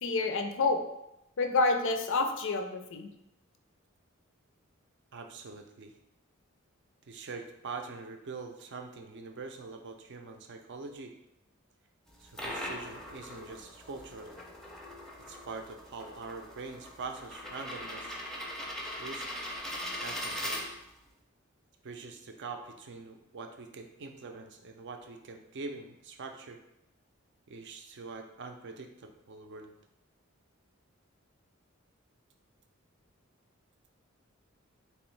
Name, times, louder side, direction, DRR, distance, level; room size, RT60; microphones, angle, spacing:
voice 1, 0.0-0.8 1.4-3.1, left 3 dB, 65° left, 6 dB, 0.4 m, -28 dB
voice 2, 5.1-5.9 7.1-11.1 12.2-14.4 15.3-18.2 19.0-19.3 20.0-20.6 21.8-26.6 27.5-29.7, right 4 dB, 60° right, 5 dB, 0.5 m, -44 dB
sound 1, 12.1-21.1, equal, ahead, 0.4 m, -40 dB
3.7 x 3.0 x 3.2 m, 0.85 s
head